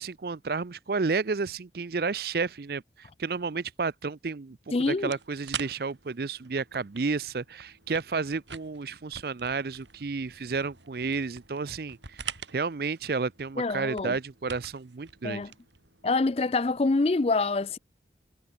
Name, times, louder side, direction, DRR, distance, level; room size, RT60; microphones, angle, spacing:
voice 1, 0.0-15.4, right 4 dB, 55° right, 0.5 m, -31 dB
voice 2, 4.7-5.1 13.6-14.2 15.2-15.5 16.0-17.8, left 3 dB, 35° left, 0.4 m, -26 dB
sound 1, 5.0-16.2, right 7 dB, 85° right, 6.1 m, -45 dB
head